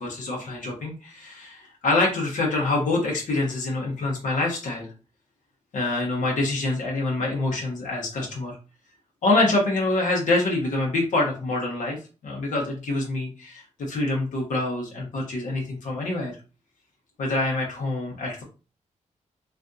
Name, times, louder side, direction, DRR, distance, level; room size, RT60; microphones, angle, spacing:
voice 1, 0.0-4.9 5.7-8.6 9.2-12.0 12.2-16.3 17.2-18.4, left 2 dB, 80° left, -1 dB, 0.9 m, -26 dB
3.5 x 2.5 x 2.6 m, 0.33 s
wide cardioid pair, 120°, 13 cm